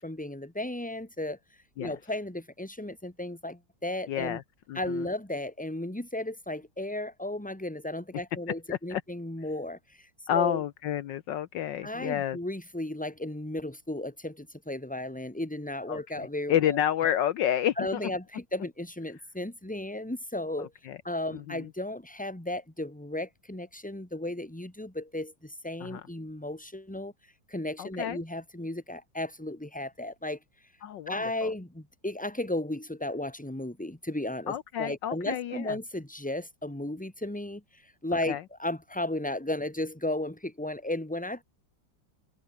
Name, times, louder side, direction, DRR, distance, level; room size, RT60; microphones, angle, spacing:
voice 1, 0.0-1.4 1.8-4.4 4.7-10.6 11.8-16.8 17.8-20.7 21.0-27.1 27.5-30.4 31.1-37.6 38.0-41.4, left 1 dB, 5° left, 2.8 m, -34 dB
voice 2, 4.1-4.4 4.7-5.1 8.7-9.0 10.3-12.4 15.9-18.1 20.6-21.0 21.3-21.7 25.8-26.1 27.8-28.2 30.8-31.5 34.5-35.8 38.3-38.4, left 10 dB, 70° left, 1.5 m, -30 dB
omnidirectional pair, 2.1 m